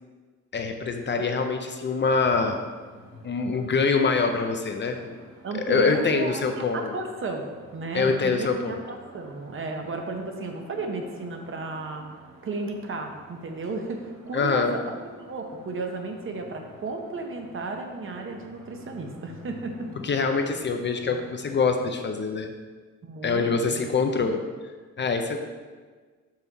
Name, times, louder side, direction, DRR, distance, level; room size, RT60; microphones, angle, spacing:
voice 1, 0.5-2.6 3.2-5.1 5.7-7.0 7.9-8.8 14.3-14.7 20.0-22.5 23.2-24.4 25.0-25.4, left 4 dB, 35° left, 5 dB, 0.5 m, -24 dB
sound 1, 2.1-21.9, right 1 dB, 90° right, 1.9 m, -50 dB
voice 2, 5.4-7.5 7.7-12.0 12.4-14.8 15.2-19.9 23.0-23.8, right 3 dB, 40° right, 3 dB, 0.8 m, -33 dB
6.1 x 5.7 x 4.0 m, 1.5 s
wide cardioid pair, 155°, 31 cm